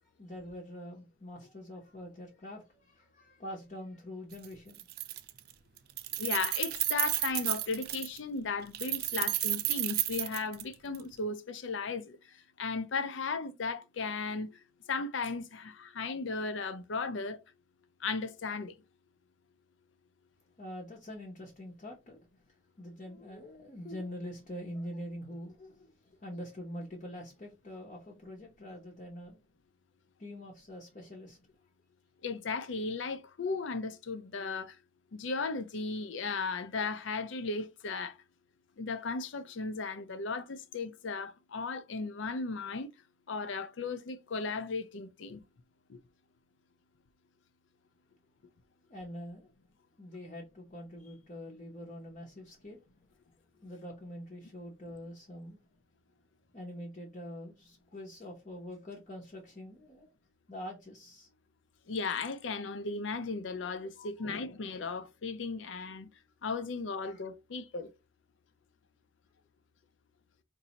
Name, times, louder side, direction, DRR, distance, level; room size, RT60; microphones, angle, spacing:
voice 1, 0.0-4.9 20.6-22.2 22.8-29.4 30.2-31.4 48.9-49.5 50.0-52.8 53.6-55.6 56.5-60.1 60.5-61.3 63.6-64.3 67.0-67.2, equal, 40° left, 0.7 m, -45 dB
Keys jangling, 4.3-4.5 4.8-5.5 5.8-8.2 8.7-11.0, right 15 dB, 50° right, 0.3 m, -32 dB
voice 2, 6.2-17.4 18.0-18.8 32.2-34.8 35.1-38.2 38.8-42.9 43.3-45.4 45.9-46.0 61.9-66.1 66.4-67.9, left 4 dB, 75° left, 0.5 m, -36 dB
4.0 x 2.6 x 2.9 m
head